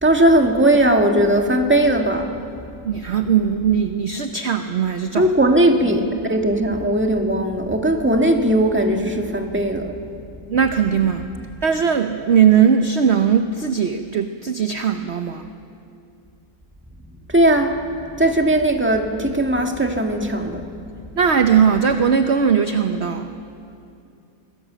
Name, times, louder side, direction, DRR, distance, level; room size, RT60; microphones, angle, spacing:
voice 1, 0.0-2.3 5.2-9.9 17.3-17.8 18.2-20.6, right 1 dB, 5° right, 2 dB, 1.7 m, -18 dB
voice 2, 2.8-5.3 10.5-11.3 11.6-15.5 21.2-23.3, right 7 dB, 50° right, 7 dB, 0.9 m, -19 dB
26.5 x 19.0 x 7.6 m, 2.5 s
omnidirectional pair, 2.0 m